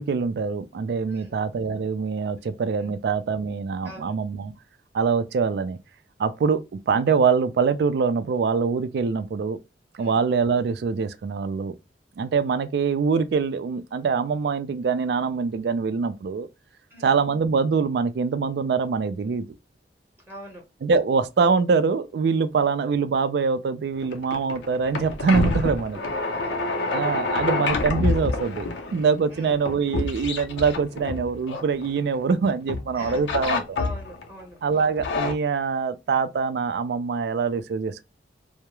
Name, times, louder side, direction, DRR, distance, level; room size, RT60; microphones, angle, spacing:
voice 1, 0.0-4.5 4.9-5.8 6.2-9.6 9.9-11.8 12.2-16.5 17.0-19.5 20.8-26.0 26.9-33.8 34.6-38.0, right 5 dB, 65° right, 0.3 m, -24 dB
voice 2, 2.4-2.9 3.8-4.2 10.0-10.2 16.9-17.2 20.3-20.6 22.6-22.7 25.9-27.1 29.3-29.5 32.9-34.6, equal, 10° right, 0.7 m, -43 dB
sound 1, 23.9-32.3 32.7-34.3 34.8-35.3, left 3 dB, 80° left, 0.5 m, -28 dB
2.3 x 2.0 x 2.9 m
head